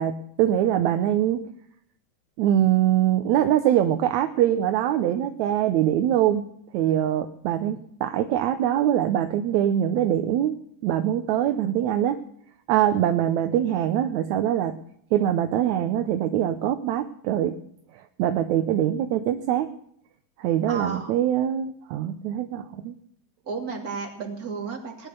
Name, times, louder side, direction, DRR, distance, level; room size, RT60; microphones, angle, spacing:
voice 1, 0.0-1.4 2.4-6.4 6.7-10.6 10.8-12.2 12.7-14.8 15.1-17.6 17.9-19.7 20.4-23.0, right 11 dB, 75° right, 7 dB, 2.0 m, -23 dB
voice 2, 20.7-21.1 23.4-25.1, right 5 dB, 30° right, 2 dB, 3.0 m, -33 dB
19.0 x 10.5 x 6.8 m, 0.69 s
omnidirectional pair, 3.7 m